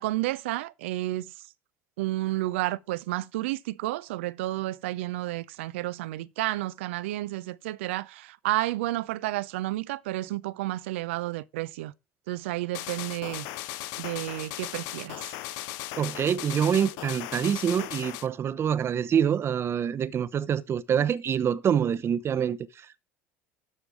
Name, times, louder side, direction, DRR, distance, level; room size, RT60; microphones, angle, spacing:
voice 1, 0.0-1.3 2.0-11.9 12.3-13.5 14.0-15.2, right 17 dB, 75° right, 0.5 m, -31 dB
sound 1, 12.7-18.3, left 15 dB, 65° left, 0.5 m, -37 dB
voice 2, 16.0-23.0, right 8 dB, 40° right, 0.8 m, -26 dB
13.0 x 4.6 x 5.0 m
hypercardioid pair, 70°, 7 cm